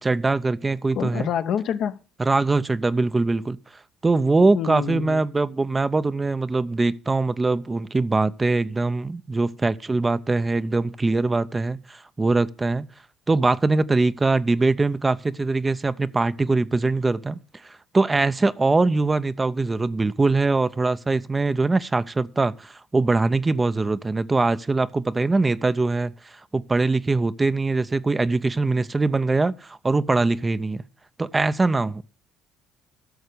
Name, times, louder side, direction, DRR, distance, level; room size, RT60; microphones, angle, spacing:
voice 1, 0.0-1.3 2.2-3.6 4.0-12.9 13.3-30.8 31.2-32.0, right 3 dB, 20° right, 0.6 m, -22 dB
voice 2, 0.9-2.0 4.5-5.2, left 9 dB, 65° left, 0.9 m, -27 dB
12.5 x 6.5 x 6.6 m
supercardioid pair, 80°, 0 cm